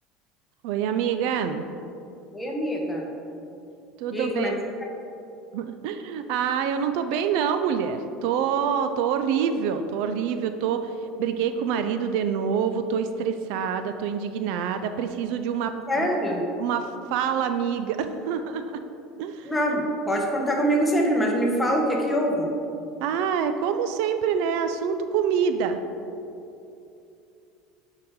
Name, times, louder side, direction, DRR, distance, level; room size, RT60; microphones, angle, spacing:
voice 1, 0.6-1.6 4.0-4.5 5.5-10.9 11.2-16.1 16.6-18.8 19.2-19.5 23.0-25.8, right 7 dB, 70° right, 8 dB, 0.4 m, -26 dB
voice 2, 2.3-3.0 4.1-4.5 15.9-16.4 19.4-22.5, equal, 5° left, -1 dB, 1.1 m, -24 dB
8.6 x 4.7 x 3.7 m, 2.7 s
supercardioid pair, 130°, 0 cm